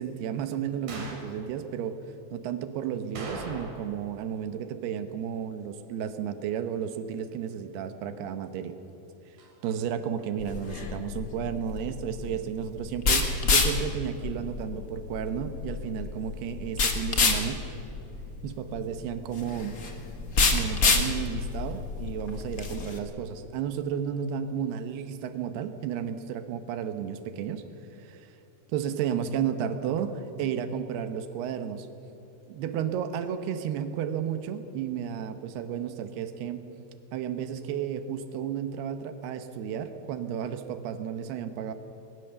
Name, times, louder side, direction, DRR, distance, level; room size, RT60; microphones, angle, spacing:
voice 1, 0.0-2.0 2.3-8.8 9.6-17.6 18.4-19.7 20.5-27.6 28.0-28.3 28.7-31.9 32.5-36.6 37.1-41.7, right 8 dB, 85° right, 9 dB, 3.1 m, -33 dB
sound 1, 0.9-1.3 3.2-4.0 4.3-4.4 9.4-9.5, right 2 dB, 60° right, 4.6 m, -39 dB
sound 2, 10.4-23.0, left 4 dB, 60° left, 0.9 m, -28 dB
20.5 x 19.0 x 6.9 m, 3.0 s
omnidirectional pair, 4.5 m